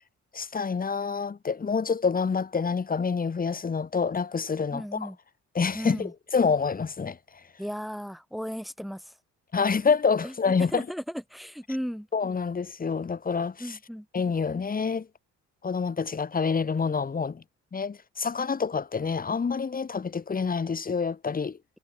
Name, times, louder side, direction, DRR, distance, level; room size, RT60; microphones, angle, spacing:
voice 1, 0.3-5.1 5.5-7.2 9.5-10.9 12.1-13.8 14.1-15.1 15.6-17.4 17.7-21.6, left 5 dB, 30° left, 1.4 m, -27 dB
voice 2, 4.7-5.2 5.7-6.1 7.6-9.1 10.2-10.3 10.7-12.1 13.6-14.1, equal, ahead, 2.9 m, -35 dB
cardioid pair, 90°, 30 cm